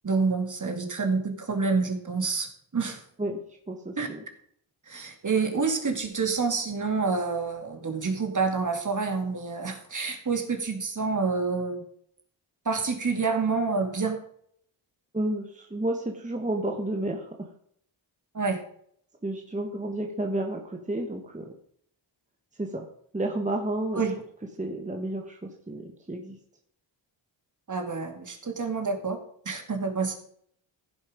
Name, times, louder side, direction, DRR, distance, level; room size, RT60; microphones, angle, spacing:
voice 1, 0.0-3.0 4.0-4.1 4.9-11.8 12.6-14.2 18.3-18.6 23.9-24.1 27.7-29.2 29.5-30.1, right 4 dB, 40° right, 5 dB, 2.5 m, -28 dB
voice 2, 3.7-4.2 15.1-17.5 19.2-21.5 22.6-22.9 23.1-24.1 24.6-26.4, right 1 dB, 15° right, 3 dB, 1.6 m, -31 dB
15.5 x 5.7 x 5.1 m, 0.66 s
cardioid pair, 65°, 47 cm